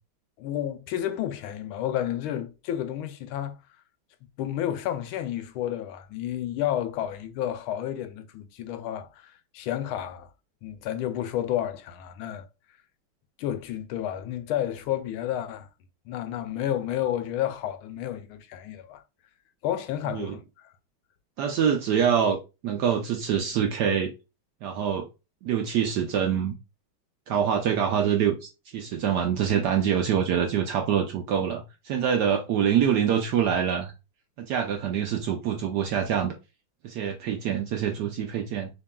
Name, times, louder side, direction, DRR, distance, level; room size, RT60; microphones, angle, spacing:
voice 1, 0.4-3.6 4.4-10.3 10.6-12.5 13.4-15.7 16.1-19.0 19.6-20.4, left 11 dB, 85° left, 1.4 m, -31 dB
voice 2, 21.4-22.4 22.6-24.1 24.6-25.1 25.4-26.5 27.3-28.4 28.7-33.9 34.4-36.3 36.8-38.7, right 8 dB, 75° right, 0.9 m, -25 dB
6.6 x 3.0 x 2.2 m
omnidirectional pair, 2.3 m